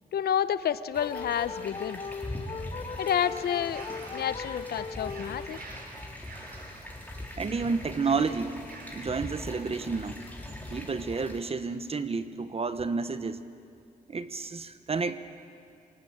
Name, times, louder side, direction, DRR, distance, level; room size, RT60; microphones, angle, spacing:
voice 1, 0.1-2.0 3.0-3.8 4.1-5.6, left 9 dB, 80° left, 14 dB, 0.8 m, -29 dB
sound 1, 0.9-11.4, left 1 dB, 10° left, 3.9 m, -42 dB
sound 2, 1.0-5.8, left 5 dB, 35° left, 0.7 m, -39 dB
sound 3, 3.0-10.9, right 3 dB, 70° right, 4.6 m, -50 dB
voice 2, 7.4-8.6 8.9-10.2 10.7-13.4 14.1-15.2, right 4 dB, 40° right, 11 dB, 1.1 m, -30 dB
27.0 x 18.0 x 8.9 m, 2.4 s
cardioid pair, 85°, 16 cm